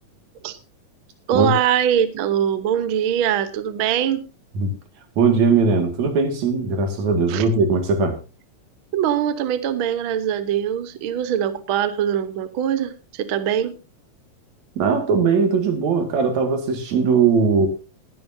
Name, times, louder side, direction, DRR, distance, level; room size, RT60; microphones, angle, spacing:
voice 1, 1.3-4.3 7.3-7.4 8.9-13.8, right 9 dB, 85° right, 1.1 m, -22 dB
voice 2, 5.2-8.2 14.8-17.7, right 5 dB, 60° right, 3.2 m, -19 dB
20.0 x 11.0 x 2.7 m
omnidirectional pair, 3.9 m